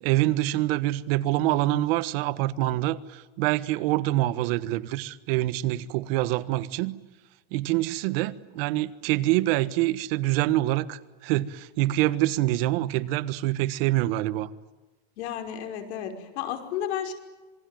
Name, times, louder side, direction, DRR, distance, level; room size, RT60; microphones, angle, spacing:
voice 1, 0.0-7.0 7.5-14.5, right 16 dB, 60° right, 1.5 m, -25 dB
voice 2, 15.2-17.1, left 9 dB, 90° left, 5.4 m, -32 dB
27.0 x 22.5 x 9.2 m
supercardioid pair, 165°, 32 cm